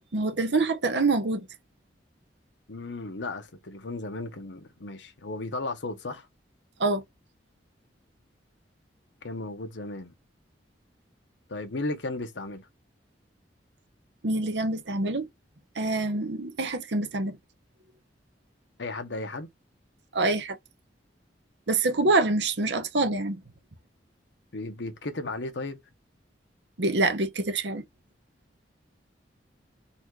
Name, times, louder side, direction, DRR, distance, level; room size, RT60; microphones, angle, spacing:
voice 1, 0.1-1.5 6.8-7.0 14.2-15.3 15.8-17.4 20.1-20.6 21.7-23.4 26.8-27.8, right 2 dB, 70° right, 0.9 m, -26 dB
voice 2, 2.7-6.3 9.2-10.1 11.5-12.7 18.8-19.5 24.5-25.8, left 2 dB, 85° left, 1.0 m, -35 dB
4.2 x 2.6 x 4.6 m
head